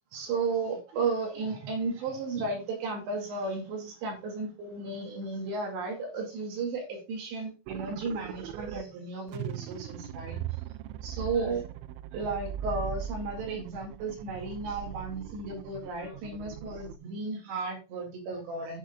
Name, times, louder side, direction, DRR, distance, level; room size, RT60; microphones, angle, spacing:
voice 1, 0.1-10.4 11.0-11.6 12.1-18.8, right 3 dB, 65° right, 1 dB, 4.1 m, -34 dB
sound 1, 7.7-8.8 9.3-17.0, right 10 dB, 85° right, 2.7 m, -39 dB
14.5 x 6.4 x 2.3 m, 0.30 s
omnidirectional pair, 5.7 m